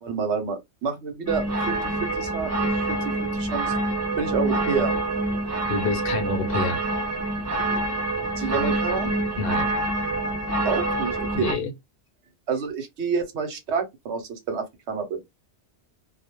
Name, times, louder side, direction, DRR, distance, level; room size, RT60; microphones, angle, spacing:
voice 1, 0.0-1.8 2.2-2.5 2.9-3.0 3.3-3.7 4.2-4.9 8.4-9.1 10.6-11.5 12.5-15.2, right 5 dB, 80° right, 1.0 m, -28 dB
sound 1, 1.3-11.5, right 2 dB, 20° right, 0.4 m, -26 dB
voice 2, 5.7-6.8 9.4-9.7 11.3-11.7, left 3 dB, 60° left, 0.7 m, -27 dB
2.2 x 2.1 x 2.9 m
omnidirectional pair, 1.1 m